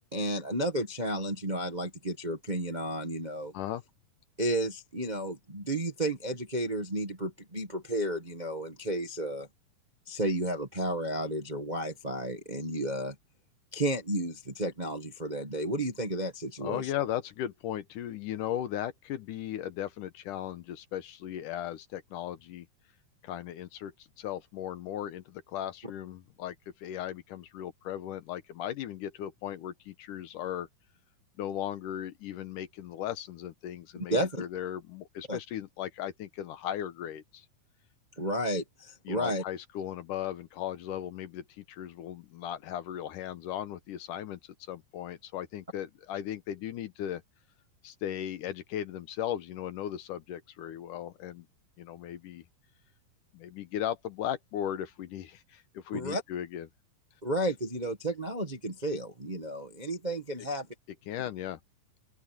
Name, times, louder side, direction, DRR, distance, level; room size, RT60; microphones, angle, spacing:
voice 1, 0.0-3.5 4.4-9.5 10.1-13.1 13.7-16.9 34.1-34.4 35.3-35.4 38.2-39.4 55.9-56.2 57.2-60.7, right 1 dB, 40° right, 0.6 m, -32 dB
voice 2, 16.6-22.7 23.2-26.6 26.8-30.7 31.4-37.5 39.1-47.2 47.8-51.5 51.8-52.4 53.3-56.7 61.1-61.6, left 11 dB, 70° left, 2.4 m, -37 dB
open air
omnidirectional pair, 4.1 m